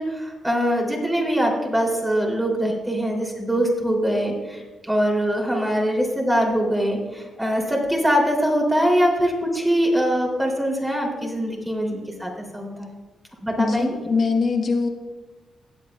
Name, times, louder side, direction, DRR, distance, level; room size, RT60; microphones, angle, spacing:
voice 1, 0.0-12.9 13.4-14.0, equal, 10° right, 0 dB, 3.0 m, -23 dB
voice 2, 13.6-14.9, left 4 dB, 50° left, 4 dB, 1.4 m, -22 dB
18.0 x 8.1 x 2.3 m, 1.2 s
cardioid pair, 85°, 0 cm